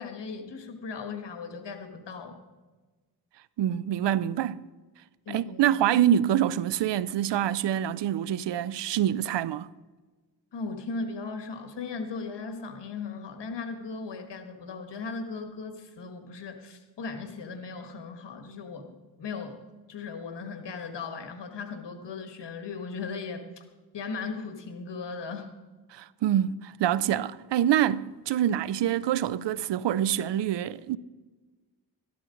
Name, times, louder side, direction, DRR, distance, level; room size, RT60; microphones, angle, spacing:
voice 1, 0.0-2.4 5.2-6.0 10.5-19.6 19.9-23.6 23.9-25.5, left 4 dB, 85° left, 1.5 m, -37 dB
voice 2, 3.6-4.6 5.3-9.7 25.9-31.0, right 11 dB, 85° right, 0.5 m, -26 dB
13.0 x 12.0 x 3.8 m
cardioid pair, 55°, 41 cm